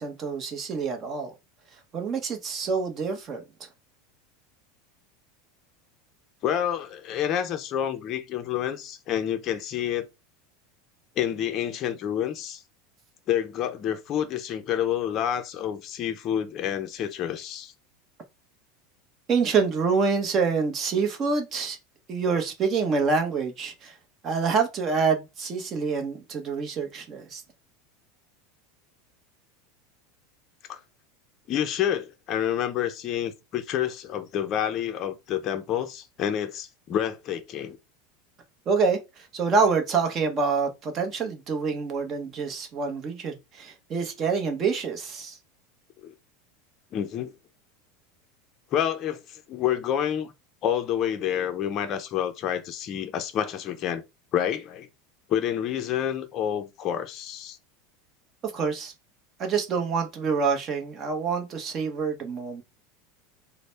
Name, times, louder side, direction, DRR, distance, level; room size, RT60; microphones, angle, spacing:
voice 1, 0.0-1.3 1.9-3.7 19.3-21.8 22.1-23.9 24.2-27.4 38.7-45.4 58.4-58.9 59.4-62.6, right 5 dB, 25° right, 0.8 m, -26 dB
voice 2, 6.4-10.1 11.2-12.6 13.3-17.7 30.7-30.8 31.5-37.8 46.0-46.1 46.9-47.3 48.7-50.3 50.6-54.0 54.3-54.9 55.3-57.6, left 10 dB, 30° left, 0.5 m, -28 dB
4.0 x 2.0 x 3.2 m
supercardioid pair, 160°, 0 cm